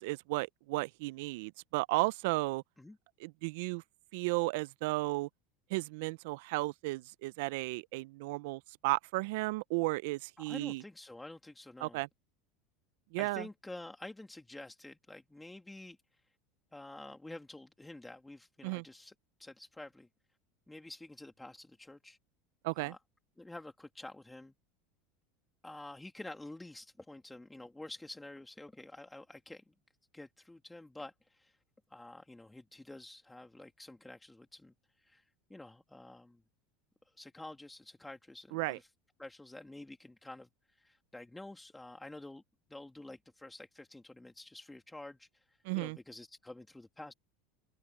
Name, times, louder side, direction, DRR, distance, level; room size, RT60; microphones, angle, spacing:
voice 1, 0.0-2.6 3.2-3.8 4.1-5.3 5.7-10.8 11.8-12.1 13.1-13.4 18.6-18.8 22.6-22.9 38.5-38.8 45.7-46.0, right 23 dB, 70° right, 0.5 m, -34 dB
voice 2, 10.4-12.0 13.2-16.0 16.7-19.1 19.4-20.1 20.7-22.2 22.8-23.0 23.4-24.5 25.6-29.6 30.1-31.6 31.9-34.7 35.0-36.4 37.2-38.9 39.2-42.4 42.7-45.4 45.7-47.1, left 2 dB, 10° left, 2.4 m, -49 dB
open air
hypercardioid pair, 95°, 0 cm